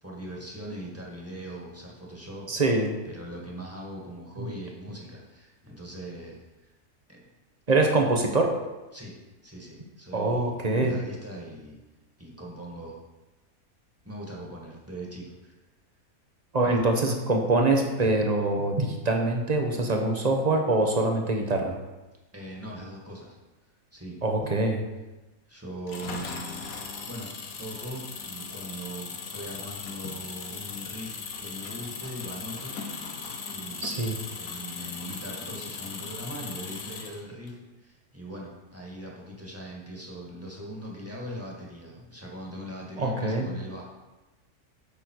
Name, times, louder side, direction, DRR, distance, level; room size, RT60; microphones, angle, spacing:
voice 1, 0.0-2.6 3.1-6.7 7.1-7.3 8.9-9.2 9.4-11.8 12.2-13.0 14.1-15.5 16.6-16.8 22.3-23.4 23.9-24.2 25.5-26.6 27.0-27.3 27.6-32.7 33.5-43.8, right 1 dB, 10° right, -3 dB, 1.8 m, -40 dB
voice 2, 2.5-3.0 4.4-4.5 7.7-8.5 10.1-11.0 16.5-21.7 24.2-24.8 33.8-34.2 43.0-43.5, right 2 dB, 30° right, 2 dB, 1.1 m, -24 dB
Engine, 25.9-37.5, left 5 dB, 70° left, 1.5 m, -38 dB
8.5 x 6.8 x 4.7 m, 1.1 s
omnidirectional pair, 1.6 m